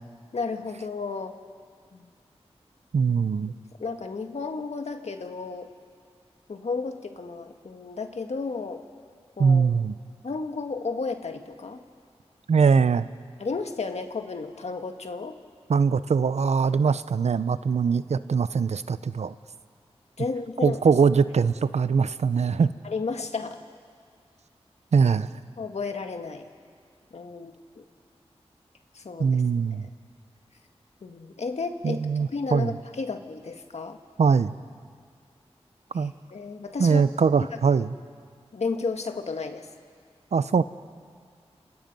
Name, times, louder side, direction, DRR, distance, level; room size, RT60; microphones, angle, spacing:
voice 1, 0.3-1.3 1.9-2.1 3.4-3.5 3.8-5.7 6.5-8.8 9.4-9.7 10.2-11.8 13.4-15.4 20.2-20.8 22.8-23.6 25.6-26.5 27.1-27.8 28.9-29.4 29.8-29.9 31.0-32.1 32.3-34.0 35.9-37.0 38.5-39.7, left 4 dB, 75° left, 5 dB, 1.7 m, -33 dB
voice 2, 2.9-3.5 9.4-9.9 12.5-13.1 15.7-19.3 20.6-22.7 24.9-25.3 29.2-29.8 31.8-32.7 34.2-34.5 35.9-36.1 36.8-38.0 40.3-40.6, right 5 dB, 80° right, 14 dB, 0.7 m, -22 dB
29.5 x 27.5 x 5.5 m, 2.1 s
cardioid pair, 55°, 11 cm